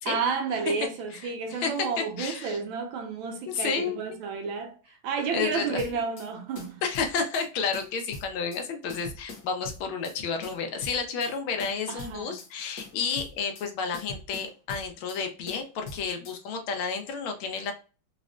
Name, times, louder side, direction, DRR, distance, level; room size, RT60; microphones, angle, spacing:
voice 1, 0.0-6.8 11.9-12.3, right 5 dB, 80° right, 1.3 m, -31 dB
voice 2, 1.1-1.7 2.0-2.6 3.5-4.0 5.3-5.8 6.8-17.7, left 5 dB, 85° left, 1.5 m, -31 dB
sound 1, 5.8-6.3 6.6-7.5 7.7-8.6 8.9-10.2 10.4-11.3 11.6-12.5 12.8-13.7 13.9-15.2 15.5-16.4, left 3 dB, 55° left, 1.3 m, -42 dB
4.0 x 2.1 x 2.4 m
omnidirectional pair, 2.3 m